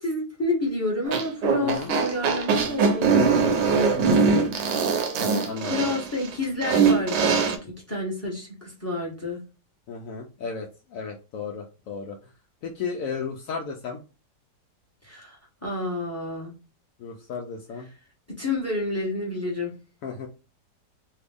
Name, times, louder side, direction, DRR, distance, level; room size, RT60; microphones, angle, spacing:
voice 1, 0.0-4.5 5.7-9.4 15.0-16.5 18.4-19.7, left 2 dB, 10° left, -2 dB, 0.9 m, -30 dB
sound 1, 1.1-7.6, right 5 dB, 75° right, 1.3 m, -22 dB
voice 2, 1.6-1.9 3.9-4.7 5.4-5.9 9.9-12.3 12.6-14.0 17.0-17.9 20.0-20.3, left 5 dB, 90° left, 2 dB, 0.7 m, -34 dB
3.3 x 2.3 x 3.4 m, 0.32 s
omnidirectional pair, 2.0 m